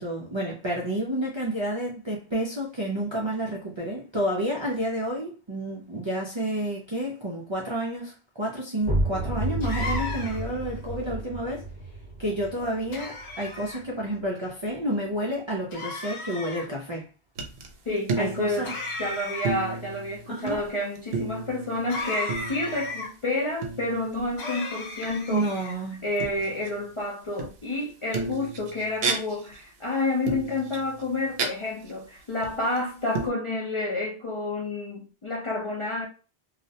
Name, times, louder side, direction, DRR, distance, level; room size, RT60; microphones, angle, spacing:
voice 1, 0.0-11.7 12.2-17.1 18.2-18.7 20.3-20.7 25.3-26.0, right 1 dB, 40° right, 0.4 m, -30 dB
sound 1, 8.8-14.4, right 1 dB, 25° right, 0.8 m, -31 dB
sound 2, 9.6-10.6 12.9-13.8 15.7-16.7 18.6-19.7 21.9-23.1 24.4-25.8, left 3 dB, 75° left, 1.0 m, -35 dB
sound 3, 17.4-17.7 18.0-19.1 19.4-20.7 21.0-23.0 23.6-24.3 25.0-25.1 26.2-26.9 27.4-27.8 28.1-29.6 30.3-31.5 31.9-32.0 32.4-32.8 33.1-33.3, right 4 dB, 70° right, 0.8 m, -33 dB
voice 2, 17.9-18.7 19.0-25.5 26.0-36.1, left 2 dB, 40° left, 0.5 m, -29 dB
2.4 x 2.0 x 2.7 m
omnidirectional pair, 1.1 m